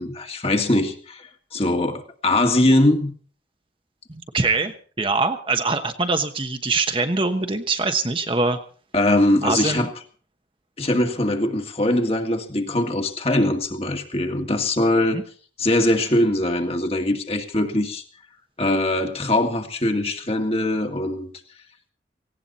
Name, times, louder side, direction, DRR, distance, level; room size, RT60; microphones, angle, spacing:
voice 1, 0.0-3.1 8.9-9.9 10.8-15.2 15.6-18.0 18.6-21.3, left 1 dB, 35° left, 1.9 m, -22 dB
voice 2, 4.1-8.6 9.4-9.9 15.1-15.2, right 3 dB, 30° right, 1.1 m, -23 dB
18.0 x 17.0 x 4.1 m
head